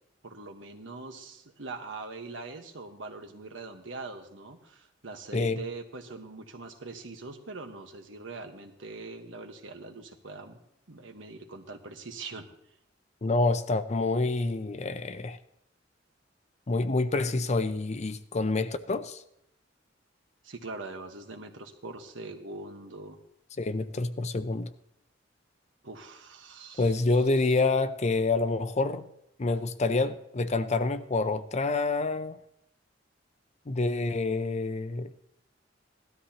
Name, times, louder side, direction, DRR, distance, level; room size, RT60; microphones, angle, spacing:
voice 1, 0.2-10.6 10.9-12.4 20.4-23.2 25.8-27.0 27.3-27.5, right 3 dB, 85° right, 5 dB, 1.3 m, -42 dB
voice 2, 5.3-5.6 13.2-15.4 16.7-19.2 23.6-24.7 26.8-29.1 29.4-32.4 33.7-35.1, left 3 dB, 35° left, 11 dB, 0.6 m, -27 dB
17.0 x 12.5 x 2.9 m, 0.79 s
head